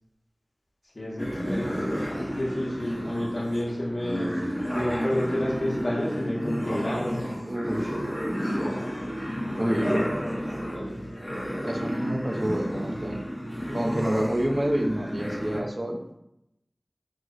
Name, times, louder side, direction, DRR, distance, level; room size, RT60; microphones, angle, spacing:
voice 1, 0.9-4.3 4.7-7.3 9.6-10.2 10.7-11.0, left 1 dB, 60° left, -3 dB, 0.8 m, -30 dB
sound 1, 1.2-15.6, equal, 5° left, 0.7 m, -31 dB
voice 2, 7.5-7.9 9.6-10.1 11.6-13.2 13.7-16.0, right 1 dB, 45° right, 1 dB, 0.4 m, -28 dB
3.1 x 2.0 x 3.7 m, 0.83 s
wide cardioid pair, 50°, 0 cm